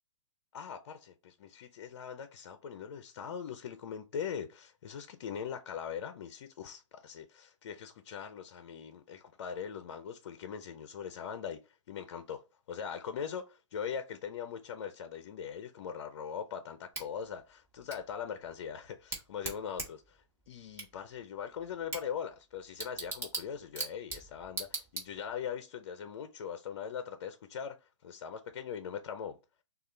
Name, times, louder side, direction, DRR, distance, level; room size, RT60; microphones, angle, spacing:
voice 1, 0.5-29.4, left 7 dB, 55° left, 0.6 m, -41 dB
Bicycle / Tick, 16.9-25.5, right 3 dB, 15° right, 1.6 m, -43 dB
6.5 x 2.4 x 3.2 m
hypercardioid pair, 130°, 16 cm